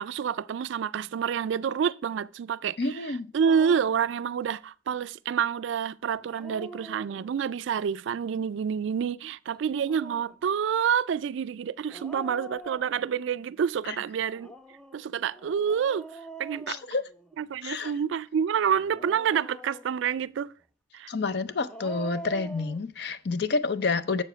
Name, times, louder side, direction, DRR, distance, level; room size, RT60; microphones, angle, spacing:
voice 1, 0.0-2.8 3.3-14.5 14.9-16.1 16.4-16.8 17.4-20.5 20.9-21.1, right 7 dB, 70° right, 0.3 m, -28 dB
voice 2, 2.8-3.3 13.9-14.0 16.7-17.0 17.6-17.9 21.1-24.2, left 4 dB, 55° left, 0.5 m, -29 dB
Dog, 3.4-4.0 6.1-7.5 9.6-10.4 11.9-13.4 14.3-17.5 18.7-20.1 21.5-22.8, right 2 dB, 5° left, 0.4 m, -44 dB
7.0 x 6.9 x 5.6 m
head